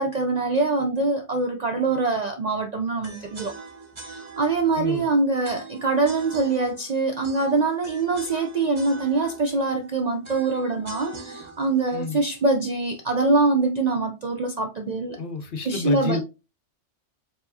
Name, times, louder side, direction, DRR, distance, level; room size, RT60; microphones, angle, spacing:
voice 1, 0.0-3.5 4.0-15.2 15.7-16.2, right 3 dB, 60° right, 0.4 m, -24 dB
sound 1, 3.0-13.1, right 3 dB, 30° right, 0.7 m, -43 dB
voice 2, 4.8-5.1 11.9-12.2 15.2-16.2, left 4 dB, 65° left, 0.7 m, -29 dB
4.6 x 2.9 x 2.6 m
omnidirectional pair, 1.2 m